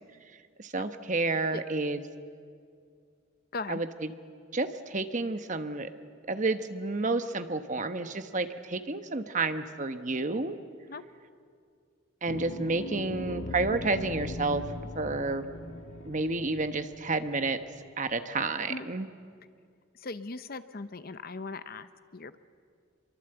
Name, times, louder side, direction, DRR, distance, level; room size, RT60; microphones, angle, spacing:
voice 1, 0.6-2.0 3.7-3.9 4.5-5.9 6.2-10.6 12.2-14.6 14.9-15.5 16.0-17.6 18.0-19.1, right 3 dB, 40° right, 9 dB, 1.1 m, -30 dB
sound 1, 12.3-18.0, left 1 dB, 80° left, 1.8 m, -40 dB
voice 2, 19.9-22.4, left 3 dB, 45° left, 12 dB, 0.8 m, -39 dB
27.0 x 23.5 x 8.0 m, 2.2 s
head